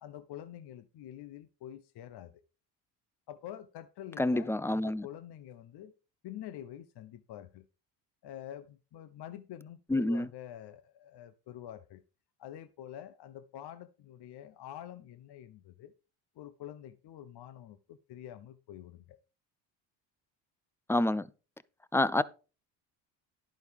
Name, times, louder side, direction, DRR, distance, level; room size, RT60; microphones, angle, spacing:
voice 1, 0.0-2.4 3.3-5.9 6.2-7.7 8.2-12.0 12.4-15.9 16.4-19.2, left 11 dB, 55° left, 0.8 m, -47 dB
voice 2, 4.2-5.1 9.9-10.3 20.9-21.3 21.9-22.2, left 1 dB, 5° left, 0.4 m, -28 dB
11.0 x 9.2 x 3.5 m
supercardioid pair, 70°, 48 cm